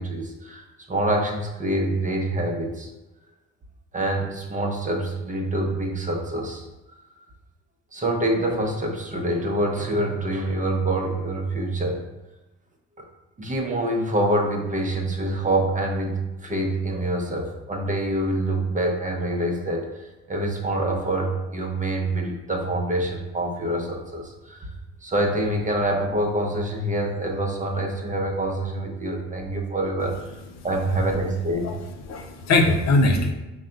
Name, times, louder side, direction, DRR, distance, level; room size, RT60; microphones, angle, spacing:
voice 1, 0.0-2.9 3.9-6.6 7.9-12.0 13.0-13.1 13.4-24.7 25.0-30.4 30.6-31.7, right 1 dB, 25° right, 1 dB, 0.7 m, -26 dB
voice 2, 31.6-33.3, left 2 dB, 60° left, 4 dB, 0.7 m, -21 dB
5.3 x 2.3 x 3.8 m, 1.0 s
cardioid pair, 90°, 30 cm